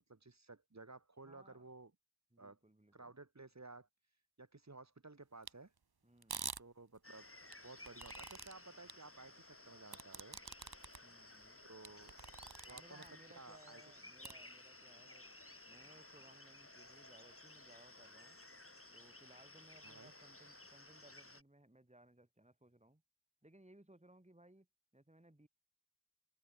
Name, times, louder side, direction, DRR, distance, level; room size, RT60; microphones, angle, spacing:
voice 1, 0.1-1.9 2.4-2.6 2.9-5.7 6.6-7.3 7.6-10.4 11.7-12.2 12.6-13.9 19.8-20.1, right 3 dB, 40° right, 1.8 m, -56 dB
voice 2, 1.2-1.6 2.3-3.1 6.0-6.5 11.0-11.6 12.7-15.3 15.7-18.4 18.9-23.0 23.4-24.7 24.9-25.5, right 1 dB, 15° right, 3.5 m, -64 dB
sound 1, 5.5-5.6 6.2-6.6 7.5-8.5 8.9-9.0 9.9-11.0 11.4-11.5 11.8-13.1 14.2-14.3, right 5 dB, 60° right, 1.3 m, -46 dB
sound 2, 7.0-21.4, left 2 dB, 30° left, 4.8 m, -57 dB
open air
wide cardioid pair, 40°, 43 cm